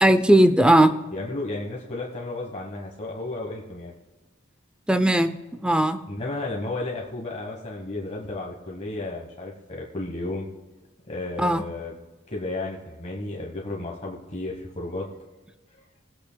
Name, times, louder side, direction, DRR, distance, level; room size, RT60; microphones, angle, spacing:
voice 1, 0.0-0.9 4.9-6.0 11.4-11.6, right 1 dB, 5° right, 10 dB, 0.5 m, -18 dB
voice 2, 1.1-3.9 6.1-10.5 11.1-11.9 12.3-15.1 15.7-15.8, left 2 dB, 35° left, -2 dB, 1.2 m, -33 dB
20.0 x 8.5 x 2.3 m, 1.2 s
head